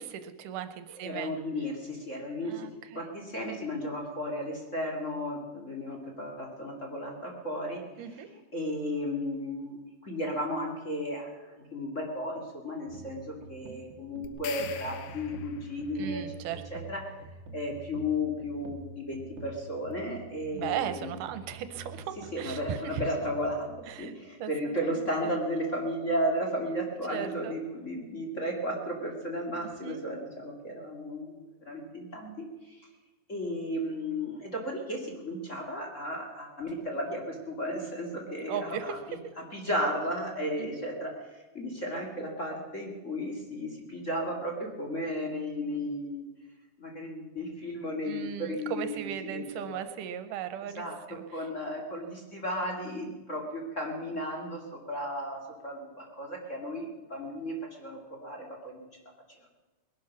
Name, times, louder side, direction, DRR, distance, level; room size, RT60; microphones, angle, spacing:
voice 1, 0.0-1.3 2.4-3.1 8.0-8.3 16.0-16.6 20.5-23.0 23.9-24.1 24.4-25.3 27.1-27.6 29.6-30.0 38.5-38.9 40.6-40.8 48.0-51.5, right 9 dB, 85° right, 11 dB, 2.4 m, -37 dB
voice 2, 1.0-2.7 2.9-8.0 8.5-16.2 16.7-17.0 17.5-21.1 22.3-23.7 24.0-32.9 33.3-39.0 39.5-46.2 46.8-49.4 49.7-49.8 50.6-51.0 51.3-58.9, equal, 25° left, -1 dB, 2.1 m, -34 dB
sound 1, 12.9-23.9, right 4 dB, 55° right, 2.1 m, -47 dB
sound 2, 14.2-15.8, left 9 dB, 75° left, 1.4 m, -42 dB
20.5 x 11.5 x 5.9 m, 1.1 s
omnidirectional pair, 3.7 m